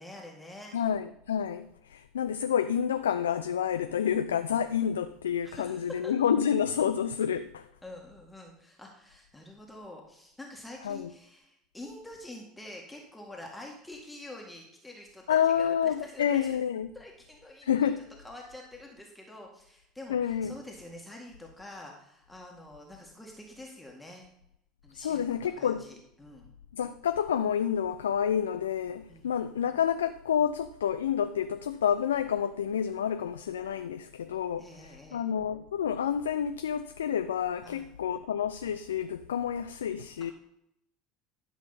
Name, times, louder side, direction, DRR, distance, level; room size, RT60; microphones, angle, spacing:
voice 1, 0.0-0.8 5.4-6.1 7.8-16.6 16.9-17.9 18.2-24.2 24.8-26.5 29.1-29.3 34.6-35.2 37.6-37.9, left 1 dB, 5° left, 2.0 m, -46 dB
voice 2, 0.7-7.7 10.8-11.1 15.3-16.9 17.6-18.0 20.1-20.5 24.9-25.9 26.7-40.3, left 8 dB, 75° left, 0.4 m, -29 dB
12.5 x 6.3 x 4.1 m
figure-of-eight pair, 70°, 0 cm